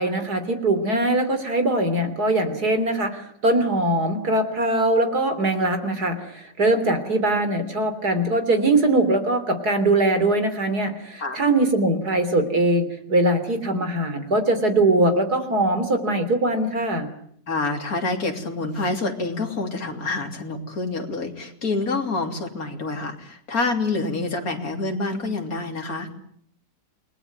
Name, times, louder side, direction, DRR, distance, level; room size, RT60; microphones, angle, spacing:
voice 1, 0.0-17.1, right 2 dB, 60° right, 9 dB, 3.9 m, -21 dB
voice 2, 17.5-26.1, left 3 dB, 55° left, 3 dB, 3.7 m, -27 dB
29.0 x 20.5 x 9.4 m, 0.68 s
omnidirectional pair, 1.9 m